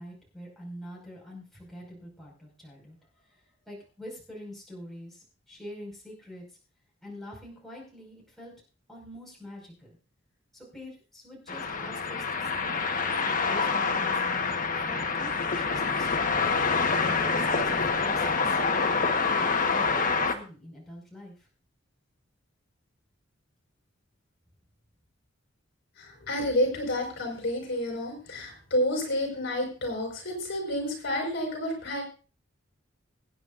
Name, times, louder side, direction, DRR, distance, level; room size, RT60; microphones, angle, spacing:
voice 1, 0.0-3.0 3.3-6.5 7.0-8.5 8.9-10.0 10.5-12.8 13.2-14.2 14.7-16.3 17.0-18.6 18.9-21.5, left 1 dB, ahead, -4 dB, 5.3 m, -45 dB
sound 1, 11.5-20.3, left 4 dB, 45° left, 1.3 m, -26 dB
voice 2, 26.0-32.0, left 1 dB, 60° left, 1 dB, 5.2 m, -30 dB
25.0 x 9.4 x 2.6 m, 0.36 s
head